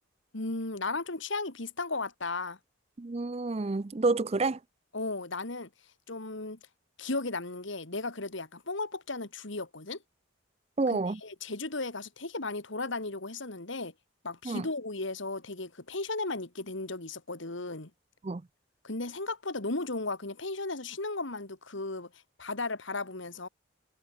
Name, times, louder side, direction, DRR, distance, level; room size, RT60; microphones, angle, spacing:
voice 1, 0.3-2.6 4.9-5.7 6.1-6.6 7.0-10.0 11.2-13.9 14.2-17.9 18.8-22.1 22.4-23.5, left 3 dB, 65° left, 2.1 m, -35 dB
voice 2, 3.0-4.6 10.8-11.2 14.4-14.7 18.2-18.4, right 3 dB, 30° right, 0.5 m, -29 dB
head